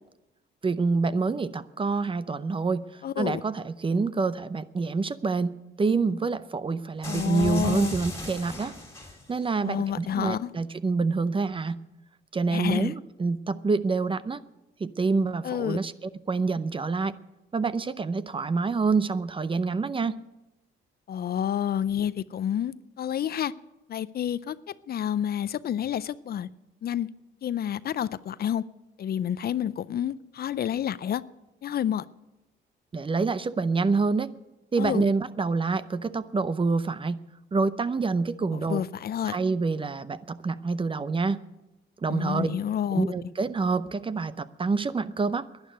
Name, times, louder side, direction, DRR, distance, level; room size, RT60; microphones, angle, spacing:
voice 1, 0.6-8.7 9.3-11.8 12.3-14.4 14.8-15.9 16.3-17.1 17.5-20.2 32.9-34.3 34.7-37.2 37.5-38.8 39.3-41.4 42.0-42.6 42.9-45.5, right 4 dB, 25° right, 15 dB, 0.6 m, -27 dB
voice 2, 3.0-3.4 7.1-8.0 9.6-10.5 12.5-12.9 15.4-15.8 21.1-23.5 23.9-26.5 26.8-27.1 27.4-28.6 29.0-31.2 31.6-32.1 34.8-35.0 38.5-39.4 42.1-43.0, left 10 dB, 50° left, 17 dB, 0.5 m, -29 dB
sound 1, 7.0-9.5, left 2 dB, 15° left, 3.2 m, -37 dB
11.5 x 10.5 x 9.0 m, 1.0 s
cardioid pair, 90°, 20 cm